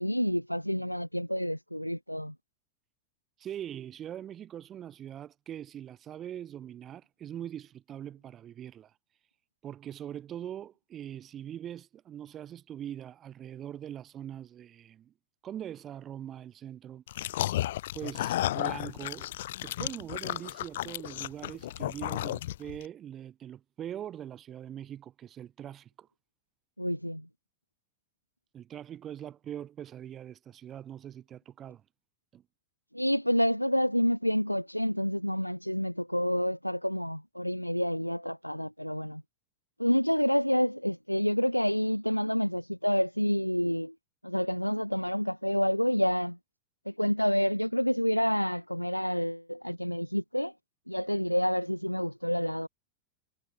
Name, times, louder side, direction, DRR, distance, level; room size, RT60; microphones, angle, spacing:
voice 1, 0.0-2.3 26.8-27.3 32.9-39.2 39.8-43.9 44.2-46.4 46.8-50.5 50.9-52.7, equal, 90° left, 1.5 m, -28 dB
voice 2, 3.4-8.9 9.6-15.1 15.4-17.0 17.5-17.6 17.9-19.3 19.6-26.1 28.5-31.8 32.3-32.4, right 10 dB, 30° right, 4.9 m, -42 dB
sound 1, 17.1-22.8, left 14 dB, 55° left, 1.6 m, -33 dB
figure-of-eight pair, 90°, 0 cm